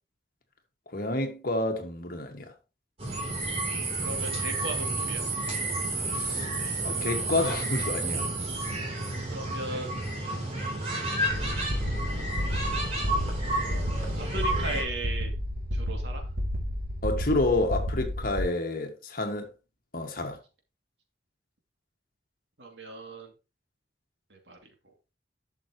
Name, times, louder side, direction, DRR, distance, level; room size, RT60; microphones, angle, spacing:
voice 1, 0.9-2.5 6.1-6.5 6.8-8.3 10.3-10.5 17.0-19.5 19.9-20.4, left 2 dB, 50° left, 1.8 m, -29 dB
sound 1, 3.0-14.8, right 2 dB, 35° right, 3.5 m, -31 dB
voice 2, 4.0-5.2 9.2-10.0 10.9-11.5 12.4-13.0 14.2-15.3 15.7-16.3 22.6-23.3 24.3-24.6, right 2 dB, 70° right, 2.7 m, -38 dB
sound 2, 11.3-18.4, equal, 55° right, 2.4 m, -31 dB
11.5 x 6.3 x 3.1 m
head